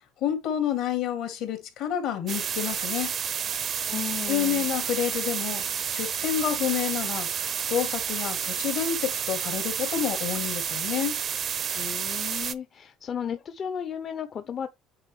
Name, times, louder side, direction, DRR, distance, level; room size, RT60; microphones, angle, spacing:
voice 1, 0.2-3.1 4.3-5.6 5.9-7.3 7.6-11.1, left 10 dB, 70° left, 2.4 m, -29 dB
sound 1, 2.3-12.5, right 8 dB, 50° right, 0.6 m, -30 dB
voice 2, 3.9-4.7 11.7-14.7, left 8 dB, 45° left, 0.7 m, -34 dB
8.8 x 4.2 x 3.3 m
supercardioid pair, 80°, 0 cm